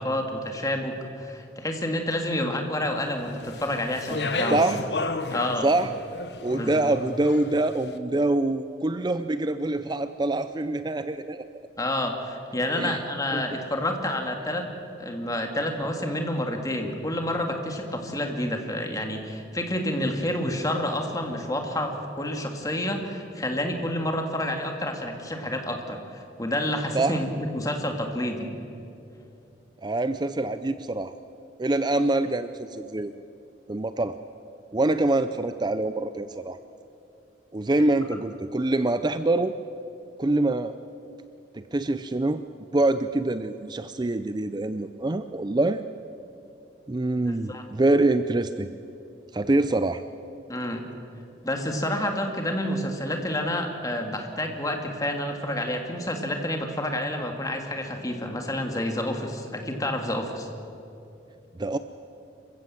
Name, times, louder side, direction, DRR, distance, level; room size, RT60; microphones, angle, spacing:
voice 1, 0.0-4.7 5.3-5.7 6.5-6.9 11.8-14.7 15.0-28.5 47.3-47.6 50.5-50.9 51.4-60.5, left 1 dB, 20° left, 3 dB, 2.2 m, -29 dB
Speech, 3.4-7.7, left 3 dB, 70° left, 1.2 m, -32 dB
voice 2, 4.5-4.8 5.6-5.9 6.4-11.5 12.7-13.0 13.3-13.4 26.9-27.2 29.8-31.1 31.6-33.1 33.7-34.2 34.7-36.6 37.5-39.6 40.2-40.7 41.5-42.4 42.7-45.8 46.9-48.7 49.3-50.0 61.6-61.8, right 2 dB, 25° right, 11 dB, 0.5 m, -25 dB
26.5 x 15.5 x 7.6 m, 2.7 s
head